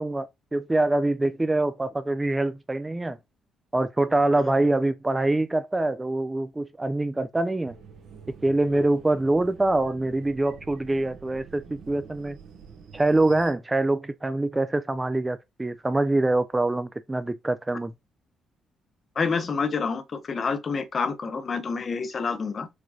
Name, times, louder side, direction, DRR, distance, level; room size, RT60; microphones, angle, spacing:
voice 1, 0.0-3.2 3.7-7.7 8.4-12.4 12.9-17.9, right 2 dB, 15° right, 0.3 m, -24 dB
sound 1, 7.7-13.5, right 6 dB, 75° right, 0.8 m, -47 dB
voice 2, 19.2-22.7, left 5 dB, 40° left, 0.5 m, -28 dB
4.8 x 2.1 x 2.6 m
cardioid pair, 90°, 0 cm